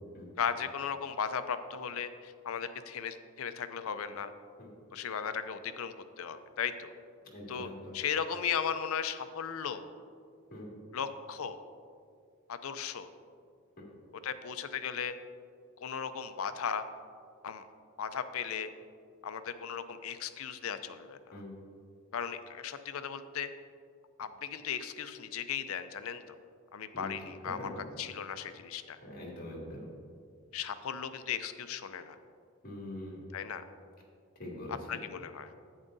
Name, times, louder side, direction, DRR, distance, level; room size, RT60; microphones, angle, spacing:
voice 1, 0.4-4.3 4.9-6.9 7.5-9.8 10.9-11.6 12.5-13.1 14.2-15.1 15.8-16.8 17.4-17.6 18.0-18.7 19.2-21.4 22.1-23.5 24.2-26.2 26.7-27.7 28.0-29.0 30.5-32.2 33.3-33.6 34.7-35.5, left 7 dB, 70° left, 10 dB, 0.5 m, -36 dB
voice 2, 7.2-8.0 10.5-10.7 13.8-13.9 21.3-21.5 26.9-27.1 27.4-27.8 29.0-29.9 32.6-33.3 34.4-35.0, left 1 dB, 40° left, -3 dB, 2.1 m, -43 dB
11.0 x 8.8 x 2.7 m, 2.3 s
head